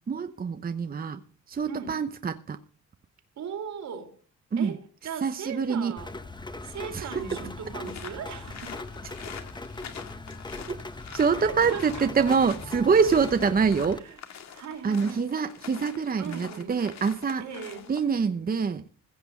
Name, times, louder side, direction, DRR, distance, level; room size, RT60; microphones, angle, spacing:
voice 1, 0.1-1.2 1.5-2.6 4.5-4.8 5.2-6.0 6.9-7.4 11.1-14.0 14.8-17.4 17.9-18.8, right 5 dB, 30° right, 0.9 m, -25 dB
voice 2, 1.7-2.0 3.4-4.1 4.6-6.1 6.6-8.8 11.4-12.2 14.0-14.2 14.5-15.3 16.2-16.8 17.4-17.9, right 7 dB, 65° right, 3.4 m, -38 dB
Rain, 6.0-14.0, left 2 dB, 15° left, 1.3 m, -40 dB
sound 1, 7.9-18.2, left 8 dB, 60° left, 2.2 m, -45 dB
15.5 x 6.0 x 8.5 m
cardioid pair, 90°, 30 cm